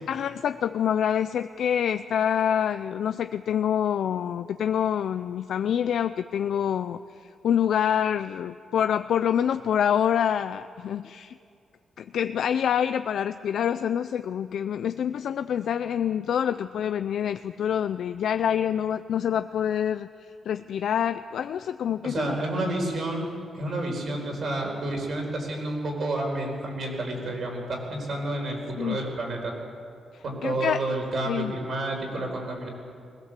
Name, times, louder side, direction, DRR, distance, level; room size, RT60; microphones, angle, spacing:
voice 1, 0.1-11.4 12.0-22.4 28.8-29.0 30.1-30.8 31.3-31.5, left 9 dB, 65° left, 10 dB, 0.5 m, -26 dB
voice 2, 22.0-29.5 30.2-32.7, right 2 dB, 45° right, 2 dB, 4.6 m, -30 dB
21.0 x 20.5 x 7.5 m, 2.4 s
wide cardioid pair, 165°, 0 cm